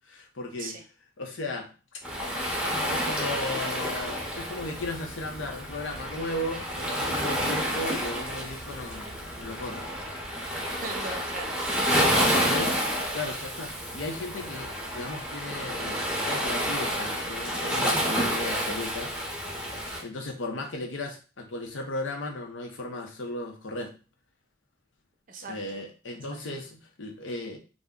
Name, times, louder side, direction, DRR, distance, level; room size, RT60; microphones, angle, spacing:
voice 1, 0.1-0.8 1.2-1.7 2.9-9.9 11.9-12.7 13.1-19.1 20.0-23.9 25.5-27.6, left 2 dB, 75° left, 2 dB, 0.7 m, -36 dB
Waves surf, 2.0-20.0, equal, 5° right, 0.6 m, -29 dB
voice 2, 10.6-12.7 25.3-25.8, right 2 dB, 45° right, 5 dB, 0.5 m, -39 dB
2.5 x 2.1 x 3.5 m, 0.33 s
head